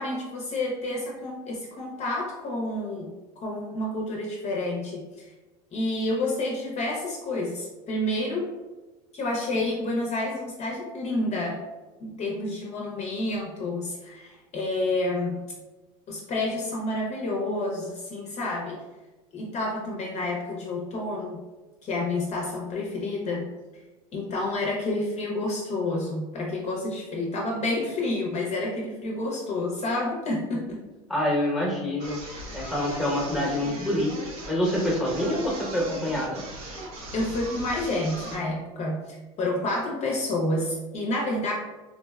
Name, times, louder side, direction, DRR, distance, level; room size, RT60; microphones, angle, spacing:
voice 1, 0.0-3.1 3.4-5.3 5.7-8.5 9.1-11.6 12.0-15.4 16.1-18.8 19.3-21.4 21.8-23.5 24.1-30.8 32.4-32.6 37.1-41.5, left 2 dB, 35° left, -2 dB, 0.6 m, -29 dB
voice 2, 31.1-32.2 32.5-34.1 34.5-36.4, left 1 dB, ahead, -3 dB, 0.9 m, -26 dB
sound 1, 32.0-38.5, right 1 dB, 80° right, 0.8 m, -39 dB
3.7 x 2.1 x 2.2 m, 1.2 s
supercardioid pair, 105°, 19 cm